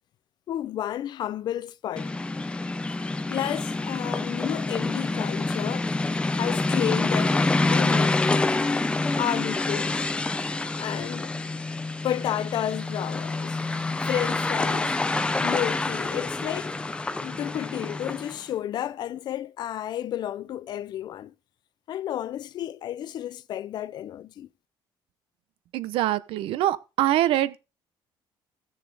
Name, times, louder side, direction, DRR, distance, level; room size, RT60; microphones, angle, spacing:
voice 1, 0.5-2.1 3.3-5.9 6.3-8.2 9.2-10.1 10.8-11.4 12.0-13.6 14.0-15.0 15.4-16.8 17.2-21.3 21.9-24.5, left 11 dB, 50° left, 0.6 m, -31 dB
sound 1, 2.0-18.4, left 2 dB, 10° left, 0.6 m, -27 dB
voice 2, 25.7-27.6, right 13 dB, 85° right, 0.8 m, -24 dB
15.5 x 6.8 x 3.4 m
cardioid pair, 155°, 9 cm